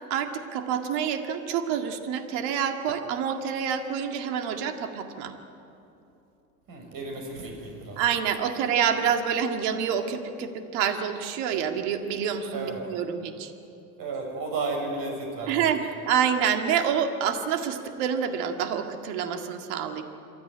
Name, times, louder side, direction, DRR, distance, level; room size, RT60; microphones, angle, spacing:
voice 1, 0.1-5.3 8.0-13.5 15.5-20.0, right 8 dB, 65° right, 6 dB, 2.1 m, -27 dB
voice 2, 6.7-8.0 12.5-12.8 14.0-15.6, right 3 dB, 50° right, 2 dB, 6.7 m, -33 dB
26.5 x 13.0 x 9.9 m, 2.9 s
hypercardioid pair, 85°, 45 cm